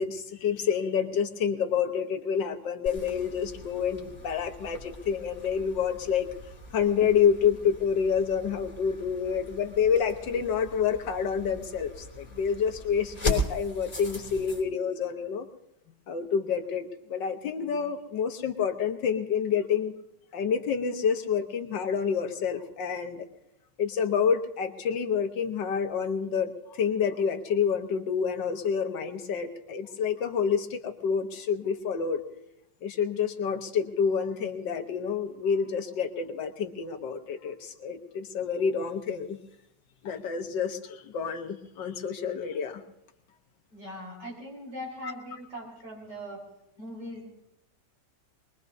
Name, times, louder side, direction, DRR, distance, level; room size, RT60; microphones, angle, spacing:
voice 1, 0.0-6.3 6.7-15.5 16.1-19.9 20.3-23.3 23.8-32.2 32.8-39.4 40.0-42.8, left 7 dB, 80° left, 6 dB, 1.8 m, -28 dB
sound 1, 2.9-14.6, left 1 dB, 20° left, 2.7 m, -38 dB
voice 2, 43.7-46.4 46.8-47.3, equal, 65° right, -5 dB, 5.0 m, -40 dB
23.5 x 21.5 x 2.7 m, 0.84 s
omnidirectional pair, 2.0 m